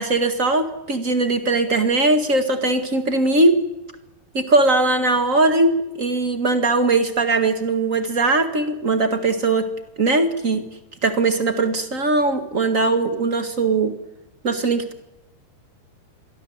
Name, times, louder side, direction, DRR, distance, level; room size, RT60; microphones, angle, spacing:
voice 1, 0.0-3.6 4.3-9.7 10.0-10.6 11.0-13.9 14.4-15.0, right 2 dB, 80° right, 7 dB, 0.7 m, -20 dB
28.5 x 23.5 x 8.0 m, 0.92 s
omnidirectional pair, 4.7 m